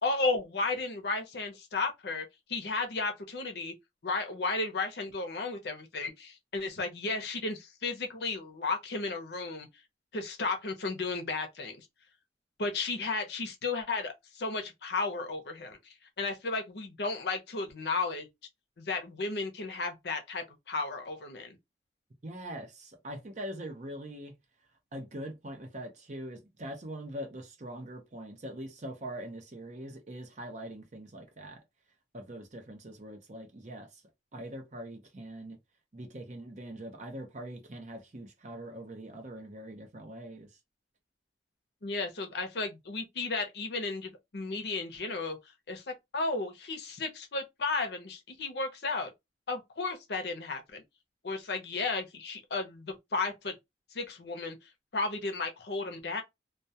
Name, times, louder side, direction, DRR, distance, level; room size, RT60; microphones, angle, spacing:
voice 1, 0.0-3.7 4.0-9.7 10.1-11.9 12.6-18.3 18.8-21.6 41.8-45.4 45.7-45.8 46.1-49.1 49.5-50.8 51.2-53.5 53.9-56.2, left 3 dB, 65° left, 0.6 m, -34 dB
voice 2, 22.2-24.3 24.9-31.6 32.1-34.0 34.3-35.6 35.9-40.5, right 1 dB, 40° right, 0.6 m, -42 dB
2.3 x 2.2 x 2.7 m
head